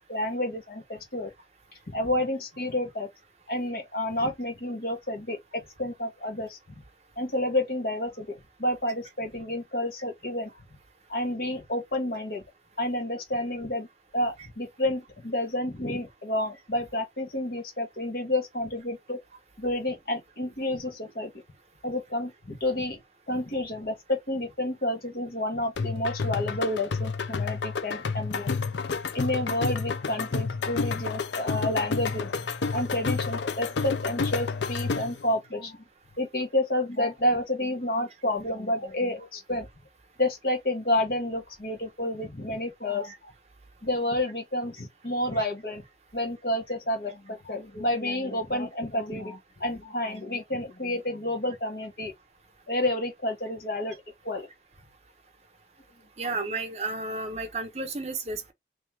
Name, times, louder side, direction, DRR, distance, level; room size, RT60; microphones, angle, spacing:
voice 1, 0.1-1.3 1.9-3.1 3.5-6.6 7.2-10.5 11.1-12.4 12.8-13.9 14.1-19.2 19.6-21.3 21.8-23.0 23.3-28.5 29.1-32.3 32.7-35.8 36.2-39.7 40.2-43.3 43.8-45.8 46.1-52.1 52.7-54.5 56.2-56.3, left 1 dB, 55° left, 1.2 m, -30 dB
sound 1, 25.8-35.3, left 4 dB, 85° left, 0.5 m, -30 dB
voice 2, 56.2-58.5, right 3 dB, 40° right, 1.0 m, -32 dB
3.1 x 3.0 x 3.5 m
head